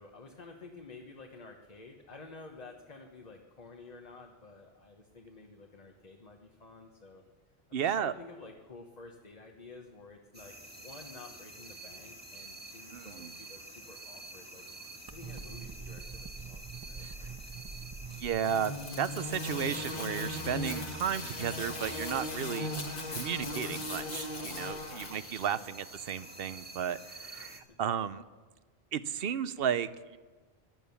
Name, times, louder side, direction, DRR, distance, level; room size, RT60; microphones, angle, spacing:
voice 1, 0.0-7.2 7.7-14.6 15.0-17.3 24.4-25.2 25.5-25.7 27.4-27.8, left 3 dB, 40° left, 2 dB, 1.2 m, -51 dB
voice 2, 7.7-8.1 12.9-13.3 17.0-17.3 18.1-22.7 23.1-28.2 28.9-30.2, right 8 dB, 70° right, 15 dB, 0.9 m, -34 dB
sound 1, 10.3-27.6, right 2 dB, 10° right, 1.6 m, -47 dB
sound 2, 13.2-18.4, right 5 dB, 30° right, 0.5 m, -46 dB
sound 3, 18.4-25.6, left 2 dB, 60° left, 1.6 m, -38 dB
16.5 x 10.5 x 7.0 m, 1.3 s
omnidirectional pair, 1.0 m